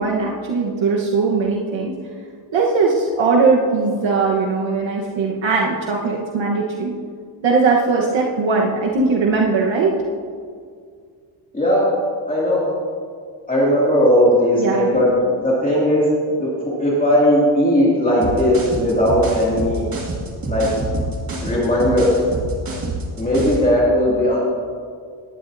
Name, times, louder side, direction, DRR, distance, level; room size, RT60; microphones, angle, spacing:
voice 1, 0.0-2.0 2.5-6.9 7.4-10.0 14.6-14.9, right 4 dB, 70° right, -2 dB, 1.3 m, -19 dB
voice 2, 11.5-11.9 12.3-12.7 13.5-15.1 15.4-16.1 16.4-19.8 20.5-20.7 21.4-22.1 23.2-24.4, equal, 15° left, -7 dB, 2.5 m, -17 dB
sound 1, 18.2-23.7, right 2 dB, 45° right, 2.2 m, -27 dB
18.5 x 11.5 x 2.7 m, 2.1 s
wide cardioid pair, 155°, 48 cm